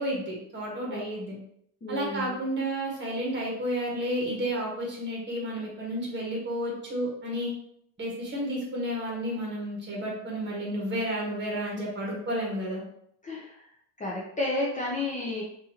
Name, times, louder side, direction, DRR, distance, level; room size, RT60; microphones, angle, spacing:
voice 1, 0.0-1.3 1.9-7.5 8.0-12.8, equal, 30° right, -3 dB, 1.6 m, -31 dB
voice 2, 0.8-1.2 1.8-2.4 13.2-13.6 14.0-15.4, left 2 dB, 20° left, -4 dB, 0.6 m, -32 dB
5.2 x 2.7 x 2.9 m, 0.70 s
cardioid pair, 150°, 39 cm